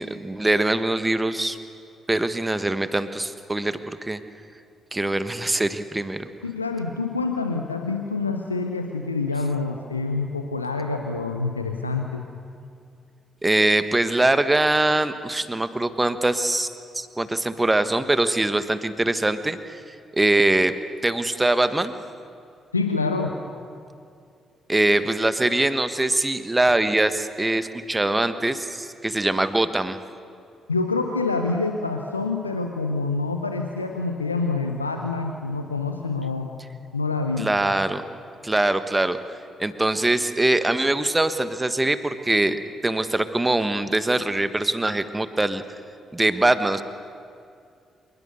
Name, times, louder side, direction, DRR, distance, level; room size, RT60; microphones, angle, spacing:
voice 1, 0.0-1.6 2.1-4.2 4.9-6.3 13.4-16.7 16.9-19.8 20.1-20.7 21.0-21.9 24.7-30.0 37.4-38.0 38.4-39.2 39.6-45.6 46.1-46.8, right 2 dB, 15° right, 11 dB, 1.4 m, -22 dB
voice 2, 6.4-12.2 22.7-23.3 30.7-36.5 36.9-37.5, left 3 dB, 85° left, 5 dB, 0.8 m, -26 dB
26.5 x 21.5 x 6.8 m, 2.4 s
figure-of-eight pair, 40°, 0 cm